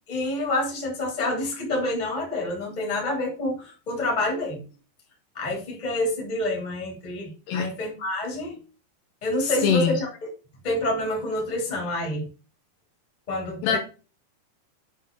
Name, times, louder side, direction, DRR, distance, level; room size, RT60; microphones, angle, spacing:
voice 1, 0.1-4.6 5.3-8.6 9.2-10.1 10.6-12.3 13.3-13.8, left 1 dB, 15° left, 1.9 m, -28 dB
voice 2, 9.4-10.0 13.6-13.8, left 7 dB, 75° left, 2.9 m, -23 dB
8.0 x 4.1 x 5.2 m
omnidirectional pair, 5.2 m